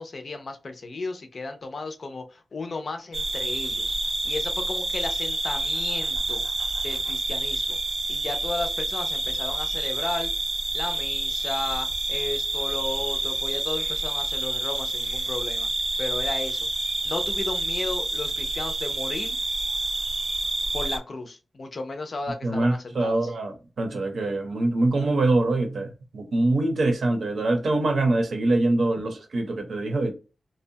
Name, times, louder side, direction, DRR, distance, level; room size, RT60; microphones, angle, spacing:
voice 1, 0.0-3.9 4.2-6.4 6.8-7.8 8.1-10.3 10.7-15.7 16.0-16.7 17.0-19.4 20.7-23.3, left 3 dB, 45° left, 0.4 m, -34 dB
sound 1, 3.1-21.0, right 2 dB, 30° right, 0.3 m, -28 dB
voice 2, 22.4-30.1, right 2 dB, 65° right, 0.7 m, -24 dB
2.6 x 2.2 x 2.7 m
wide cardioid pair, 175°, 0 cm